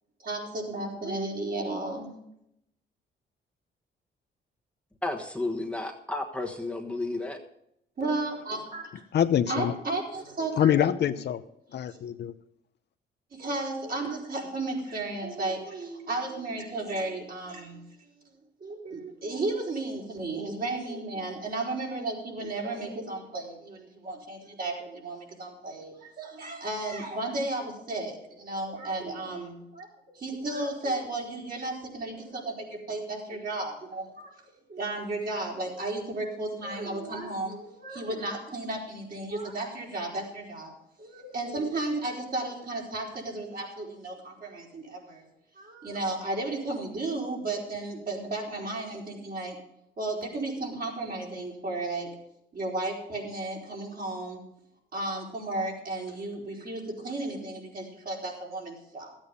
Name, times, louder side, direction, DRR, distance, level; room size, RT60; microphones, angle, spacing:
voice 1, 0.2-2.1 8.0-8.9 9.5-11.1 11.9-12.0 13.3-17.9 18.6-40.7 41.0-45.3 45.6-49.6 50.0-52.1 52.5-54.4 54.9-59.2, right 2 dB, 50° right, -2 dB, 4.5 m, -34 dB
voice 2, 5.0-7.4, left 2 dB, 5° left, 0 dB, 1.3 m, -32 dB
voice 3, 9.1-9.7 10.6-11.4 11.7-12.3, left 9 dB, 60° left, 11 dB, 0.7 m, -25 dB
13.5 x 8.8 x 5.3 m, 0.78 s
cardioid pair, 90°, 20 cm